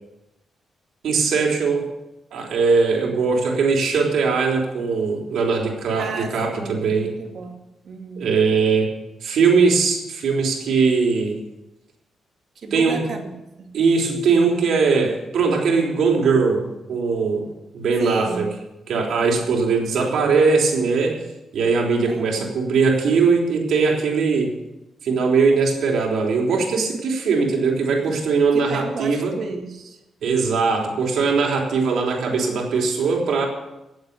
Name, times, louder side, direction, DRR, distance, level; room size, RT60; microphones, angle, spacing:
voice 1, 1.0-1.9 2.3-7.1 8.2-8.9 9.2-11.4 12.7-13.0 13.7-17.5 17.7-18.4 18.9-21.2 21.5-24.5 25.0-29.4 30.2-33.5, right 4 dB, 75° right, 1 dB, 3.5 m, -20 dB
voice 2, 6.0-7.6 7.8-8.3 12.6-13.7 18.0-18.5 22.1-22.6 28.0-28.2 28.5-30.0, right 4 dB, 55° right, 3 dB, 2.3 m, -32 dB
18.0 x 7.9 x 6.8 m, 0.95 s
cardioid pair, 120°, 0 cm